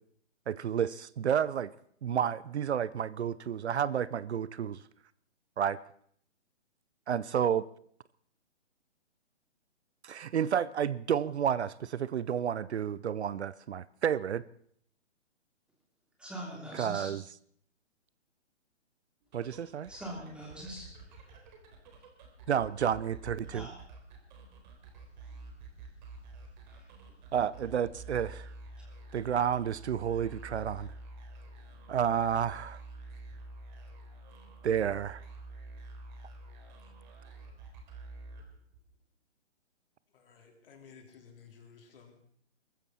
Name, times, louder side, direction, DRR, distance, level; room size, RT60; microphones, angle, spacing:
voice 1, 0.5-1.7 2.0-4.8 5.6-5.8 7.1-7.7 10.0-14.4 16.7-17.2 19.3-19.9 22.5-23.7 27.3-28.5 29.1-30.9 31.9-32.8 34.6-35.2, right 8 dB, 65° right, 19 dB, 0.7 m, -30 dB
voice 2, 16.2-17.1 19.9-20.9 23.5-23.7, right 1 dB, 5° right, -2 dB, 3.1 m, -42 dB
sound 1, 19.2-39.0, right 2 dB, 40° right, 3.6 m, -49 dB
voice 3, 40.1-42.2, left 6 dB, 50° left, 2 dB, 4.1 m, -55 dB
23.0 x 14.5 x 4.2 m, 0.63 s
hypercardioid pair, 145°, 36 cm